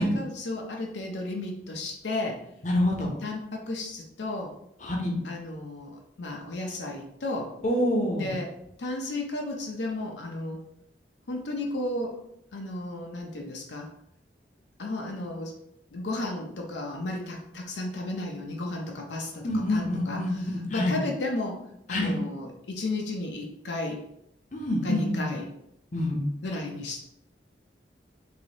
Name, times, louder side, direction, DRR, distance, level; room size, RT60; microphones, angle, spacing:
voice 1, 0.0-2.4 2.9-4.5 5.2-7.5 8.2-8.5 8.8-10.6 11.3-12.2 12.5-13.9 14.8-15.6 15.9-20.2 20.7-21.6 21.9-24.0 24.8-25.5 26.4-27.0, left 2 dB, 75° left, 1 dB, 0.6 m, -33 dB
voice 2, 2.6-3.2 4.8-5.2 7.6-8.4 19.4-21.0 21.9-22.2 24.5-25.2 25.9-26.3, left 1 dB, 45° left, 0 dB, 0.7 m, -26 dB
3.3 x 2.7 x 3.8 m, 0.77 s
head